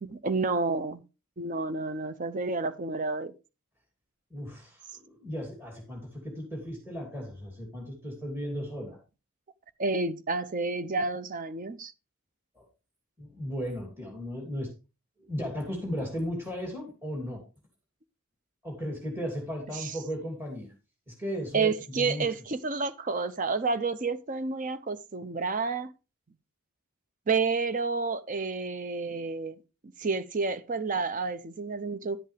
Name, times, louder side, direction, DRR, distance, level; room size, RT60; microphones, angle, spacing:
voice 1, 0.0-1.0 1.4-3.3 9.8-11.9 19.7-19.9 21.5-25.9 27.3-29.6 30.0-32.2, right 4 dB, 35° right, 0.6 m, -30 dB
voice 2, 4.3-4.9 5.2-9.0 12.5-12.6 13.2-14.7 15.2-17.4 18.6-20.7 21.1-21.7 22.0-22.3, equal, 10° right, 2.8 m, -35 dB
11.0 x 8.0 x 3.4 m
head